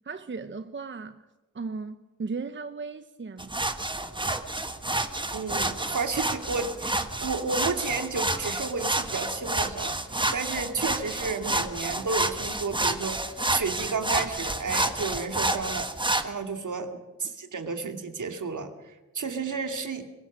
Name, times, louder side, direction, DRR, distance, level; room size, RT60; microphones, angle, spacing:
voice 1, 0.0-1.3 1.5-3.6, right 4 dB, 35° right, 0.8 m, -36 dB
sound 1, 3.4-16.2, right 2 dB, 15° right, 1.4 m, -29 dB
voice 2, 5.3-13.2 13.5-15.9 16.2-20.1, right 4 dB, 65° right, 2.3 m, -32 dB
23.0 x 20.5 x 6.2 m
wide cardioid pair, 95°, 32 cm